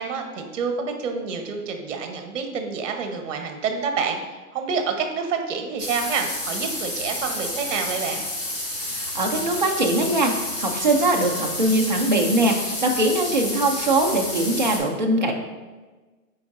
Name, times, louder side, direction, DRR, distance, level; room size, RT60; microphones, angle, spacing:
voice 1, 0.0-8.2, right 5 dB, 50° right, 5 dB, 1.0 m, -28 dB
sound 1, 5.8-14.8, left 1 dB, 35° left, 2.0 m, -30 dB
voice 2, 8.9-15.3, right 2 dB, 35° right, 1 dB, 0.4 m, -22 dB
9.5 x 4.6 x 2.5 m, 1.3 s
hypercardioid pair, 170°, 47 cm